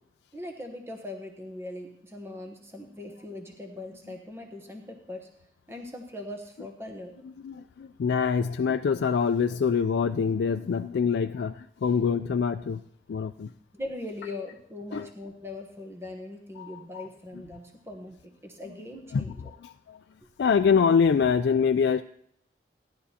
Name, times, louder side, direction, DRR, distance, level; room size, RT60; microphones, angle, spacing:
voice 1, 0.3-5.3 5.7-7.3 13.7-19.5, left 1 dB, 15° right, 3 dB, 1.0 m, -40 dB
voice 2, 7.2-11.5 11.8-12.8 13.1-13.5 14.9-15.1 16.6-17.1 19.1-19.3 19.6-19.7 20.4-22.0, left 6 dB, 80° left, 6 dB, 0.3 m, -25 dB
16.5 x 11.0 x 2.8 m, 0.68 s
head